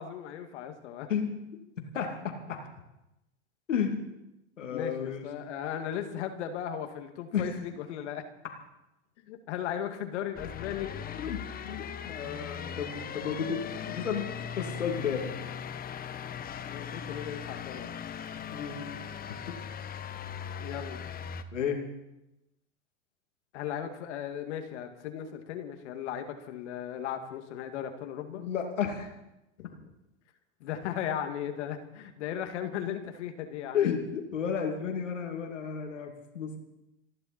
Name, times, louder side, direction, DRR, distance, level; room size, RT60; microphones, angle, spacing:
voice 1, 0.0-1.1 4.7-8.2 9.2-10.9 16.6-17.9 20.6-21.1 23.5-28.4 29.6-29.9 30.6-33.9, left 9 dB, 70° left, 6 dB, 2.2 m, -36 dB
voice 2, 3.7-4.0 4.6-5.3 7.3-7.6 11.1-11.4 11.6-14.3 14.6-15.3 18.5-18.8 19.3-19.5 21.5-21.8 28.3-29.1 33.7-36.6, left 7 dB, 90° left, 3 dB, 2.6 m, -32 dB
sound 1, 10.4-21.4, left 8 dB, 25° left, 1.1 m, -39 dB
28.0 x 11.0 x 4.4 m, 0.92 s
hypercardioid pair, 105°, 36 cm